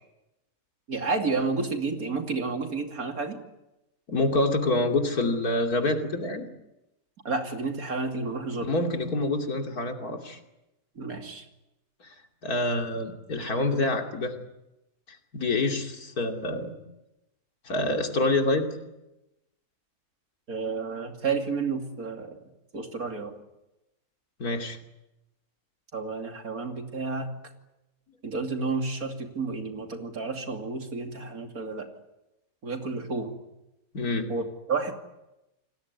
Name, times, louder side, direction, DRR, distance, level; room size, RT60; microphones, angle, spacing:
voice 1, 0.9-3.4 7.2-8.7 10.9-11.5 20.5-22.4 22.7-23.3 25.9-27.3 28.2-31.9 32.6-33.4 34.3-34.9, right 4 dB, 75° right, 5 dB, 3.2 m, -31 dB
voice 2, 4.1-6.5 8.7-10.4 12.0-12.1 12.4-14.3 15.3-16.7 17.6-18.7 24.4-24.8 33.9-34.3, left 2 dB, 80° left, 4 dB, 3.3 m, -26 dB
28.5 x 19.5 x 9.6 m, 0.95 s
omnidirectional pair, 1.5 m